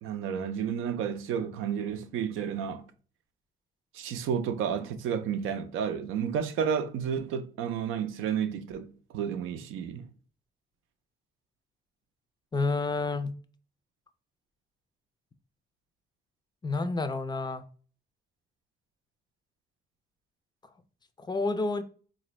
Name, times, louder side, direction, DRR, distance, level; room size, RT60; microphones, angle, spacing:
voice 1, 0.0-2.9 3.9-10.1, right 7 dB, 90° right, 0.5 m, -31 dB
voice 2, 12.5-13.3 16.6-17.6 21.2-21.8, left 3 dB, 20° left, 0.4 m, -29 dB
4.0 x 2.5 x 3.0 m
cardioid pair, 90°, 20 cm